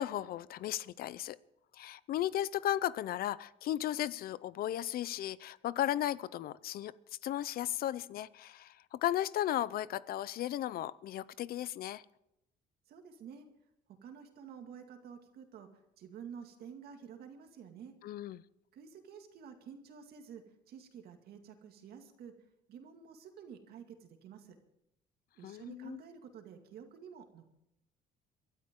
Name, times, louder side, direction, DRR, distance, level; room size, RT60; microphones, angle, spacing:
voice 1, 0.0-1.4 1.7-7.0 7.2-12.0 18.0-18.4 25.4-26.0, left 12 dB, 60° left, 19 dB, 0.6 m, -35 dB
voice 2, 12.9-13.5 13.9-17.9 18.7-22.3 22.7-24.6 25.3-27.5, right 7 dB, 70° right, 5 dB, 2.2 m, -50 dB
23.5 x 12.5 x 3.8 m, 0.81 s
cardioid pair, 110°, 17 cm